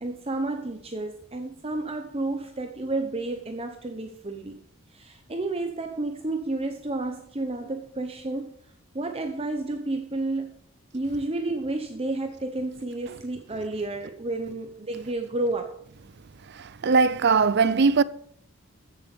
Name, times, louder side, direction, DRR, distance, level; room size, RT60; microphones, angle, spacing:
voice 1, 0.0-4.6 4.9-8.6 8.9-10.6 10.9-15.8, right 2 dB, 25° right, 0.9 m, -31 dB
voice 2, 16.8-18.0, right 5 dB, 50° right, 0.5 m, -19 dB
14.5 x 7.1 x 5.4 m
head